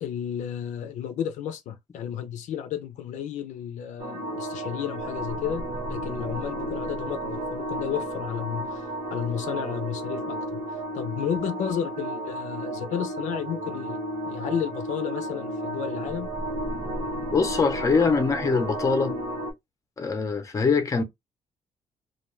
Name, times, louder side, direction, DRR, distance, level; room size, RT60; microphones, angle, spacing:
voice 1, 0.0-10.6 10.9-16.3, left 9 dB, 80° left, 0.5 m, -32 dB
sound 1, 4.0-19.5, right 1 dB, 65° right, 1.1 m, -33 dB
voice 2, 17.3-19.1 20.0-21.0, left 4 dB, 25° left, 0.6 m, -23 dB
2.3 x 2.3 x 3.0 m
cardioid pair, 120°, 12 cm